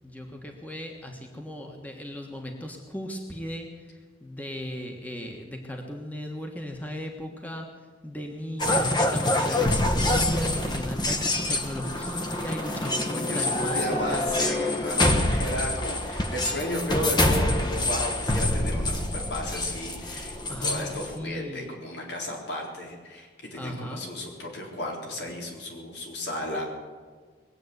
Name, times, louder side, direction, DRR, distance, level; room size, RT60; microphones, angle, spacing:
voice 1, 0.0-7.7 8.0-14.4 20.5-21.7 23.5-24.1, equal, 10° left, 2 dB, 1.4 m, -36 dB
sound 1, 8.6-21.2, left 1 dB, 25° left, 1.1 m, -26 dB
voice 2, 13.1-26.6, left 1 dB, 80° left, -1 dB, 3.9 m, -34 dB
21.0 x 8.5 x 8.0 m, 1.5 s
head